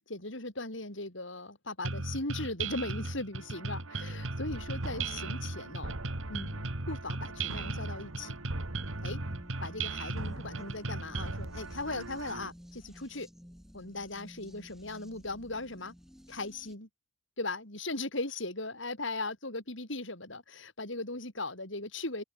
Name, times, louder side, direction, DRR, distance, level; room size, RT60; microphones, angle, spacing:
voice 1, 0.1-6.0 6.3-8.3 9.0-9.2 9.6-13.3 13.7-15.9 16.3-16.9 17.4-22.2, left 2 dB, 65° left, 5.6 m, -38 dB
sound 1, 1.8-11.4, right 3 dB, 70° right, 2.8 m, -37 dB
sound 2, 3.3-12.5, right 2 dB, 90° right, 2.1 m, -43 dB
sound 3, 5.6-16.8, equal, ahead, 5.2 m, -53 dB
head